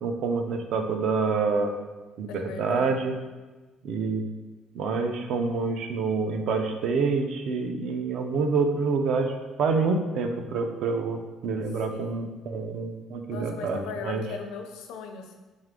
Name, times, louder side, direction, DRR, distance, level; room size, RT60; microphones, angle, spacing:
voice 1, 0.0-1.7 2.2-3.2 3.8-4.2 4.8-14.2, right 4 dB, 55° right, 5 dB, 0.4 m, -27 dB
voice 2, 2.3-3.1 11.9-12.2 13.3-15.4, left 5 dB, 75° left, 4 dB, 0.5 m, -39 dB
3.5 x 3.2 x 3.6 m, 1.2 s
cardioid pair, 175°, 0 cm